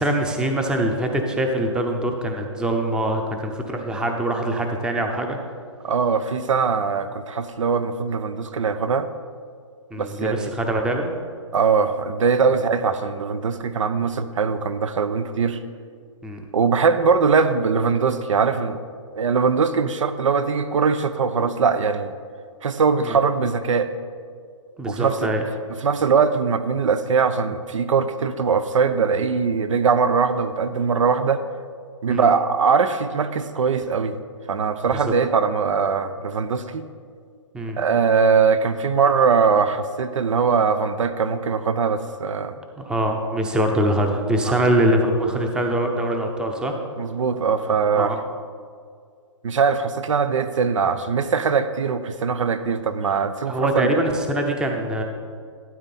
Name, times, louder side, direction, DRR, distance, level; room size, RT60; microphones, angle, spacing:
voice 1, 0.0-5.4 9.9-11.1 16.2-16.4 23.0-23.2 24.8-25.5 32.1-32.3 34.9-35.0 37.5-37.9 42.8-46.7 47.9-48.2 53.5-55.0, right 1 dB, 5° right, 3 dB, 0.7 m, -23 dB
voice 2, 5.8-9.1 10.0-10.5 11.5-15.6 16.5-18.8 19.1-22.1 22.6-23.9 24.9-25.3 25.8-31.4 32.0-34.2 34.5-36.9 37.8-42.6 44.4-44.6 47.0-48.2 49.4-54.0, right 5 dB, 75° right, 11 dB, 0.8 m, -21 dB
12.5 x 8.9 x 4.2 m, 2.1 s
hypercardioid pair, 150°, 16 cm